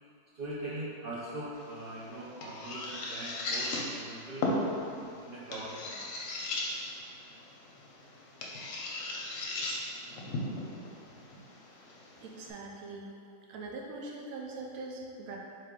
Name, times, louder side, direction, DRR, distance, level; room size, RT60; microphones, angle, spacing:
voice 1, 0.3-4.5 5.0-6.0, right 1 dB, 90° right, -8 dB, 0.5 m, -41 dB
sound 1, 1.5-12.5, left 2 dB, 65° left, 0.9 m, -37 dB
voice 2, 12.2-13.1 13.5-15.4, right 3 dB, 70° right, -1 dB, 0.9 m, -42 dB
3.8 x 2.7 x 3.6 m, 2.5 s
omnidirectional pair, 1.6 m